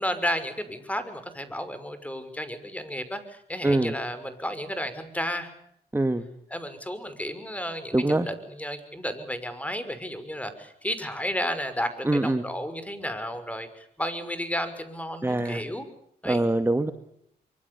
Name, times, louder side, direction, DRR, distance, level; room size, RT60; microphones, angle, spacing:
voice 1, 0.0-5.5 6.5-8.0 8.3-15.8 16.2-16.4, equal, 10° left, 11 dB, 6.0 m, -32 dB
voice 2, 3.6-4.0 5.9-6.2 7.9-8.3 12.0-12.4 15.2-15.6 16.2-16.9, right 2 dB, 15° right, 9 dB, 2.0 m, -23 dB
24.5 x 24.5 x 7.1 m, 0.74 s
supercardioid pair, 60°, 17 cm